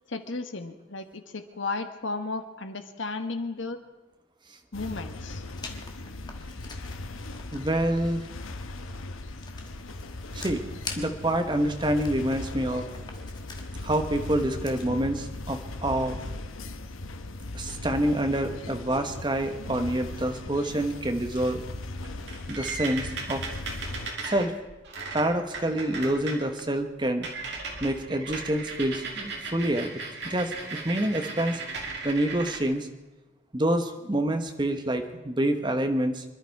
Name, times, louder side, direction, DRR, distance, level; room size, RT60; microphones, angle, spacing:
voice 1, 0.1-3.8 4.7-5.4, left 3 dB, 70° left, 7 dB, 1.3 m, -34 dB
sound 1, 4.7-24.1, left 2 dB, 85° left, 1.0 m, -38 dB
Writing, 5.6-14.9, left 4 dB, 20° left, 1.4 m, -46 dB
voice 2, 7.5-8.2 10.3-10.6 11.0-12.9 13.8-16.2 17.5-21.6 22.5-23.4 24.2-24.5 25.1-27.3 27.8-29.9 30.2-31.6 32.0-32.9 33.5-36.2, right 1 dB, 25° right, 6 dB, 1.1 m, -27 dB
sound 2, 22.0-26.4 26.8-26.9 27.2-32.6, right 4 dB, 55° right, 2.4 m, -37 dB
25.5 x 11.5 x 4.6 m, 1.1 s
head